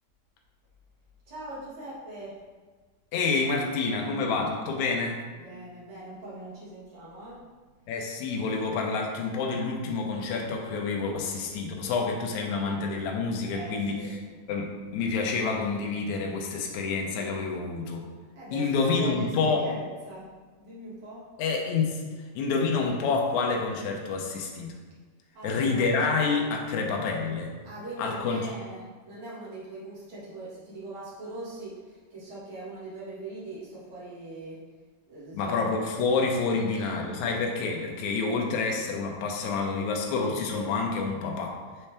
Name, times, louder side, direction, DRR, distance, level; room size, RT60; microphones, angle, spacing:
voice 1, 1.3-2.4 5.3-7.4 13.5-14.1 18.4-21.3 25.3-25.9 27.6-34.6 35.1-35.7 36.7-37.0, right 2 dB, 45° right, -9 dB, 2.2 m, -41 dB
voice 2, 3.1-5.2 7.9-14.0 14.5-18.0 18.5-19.7 21.4-22.0 22.4-24.7 25.4-27.5 28.0-28.5 35.3-41.6, left 4 dB, 75° left, 1 dB, 1.8 m, -28 dB
6.8 x 4.3 x 3.4 m, 1.4 s
omnidirectional pair, 4.1 m